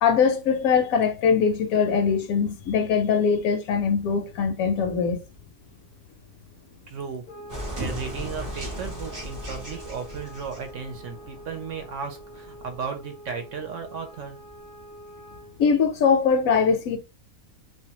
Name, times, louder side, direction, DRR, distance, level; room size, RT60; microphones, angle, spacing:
voice 1, 0.0-5.2 15.6-17.0, left 6 dB, 75° left, 1.0 m, -22 dB
voice 2, 6.9-7.2 7.8-14.4, right 6 dB, 65° right, 0.8 m, -35 dB
sound 1, 7.2-15.6, right 1 dB, 45° left, 0.6 m, -46 dB
sound 2, 7.5-12.8, right 1 dB, 25° right, 0.4 m, -37 dB
2.6 x 2.2 x 2.8 m
omnidirectional pair, 1.5 m